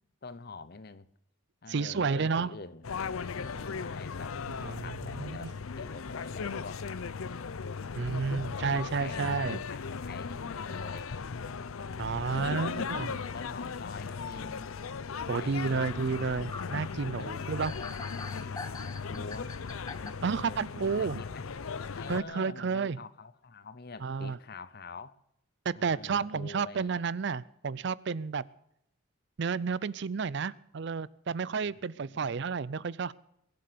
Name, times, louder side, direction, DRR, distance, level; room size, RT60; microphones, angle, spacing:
voice 1, 0.2-1.1 1.6-2.9 3.4-7.3 8.1-11.1 11.9-14.8 15.3-15.8 17.0-19.6 20.0-20.6 21.0-21.5 21.9-25.1 25.7-27.0 31.8-32.3, left 3 dB, 50° left, 0.8 m, -46 dB
voice 2, 1.7-2.6 4.6-5.5 8.0-9.6 12.0-13.1 15.3-17.7 20.2-21.2 22.1-23.0 24.0-24.4 25.6-28.4 29.4-33.1, right 5 dB, 55° right, 0.5 m, -31 dB
sound 1, 2.8-22.2, left 5 dB, 80° left, 0.6 m, -37 dB
sound 2, 15.6-20.1, left 4 dB, 15° left, 0.6 m, -44 dB
22.0 x 7.8 x 6.8 m
head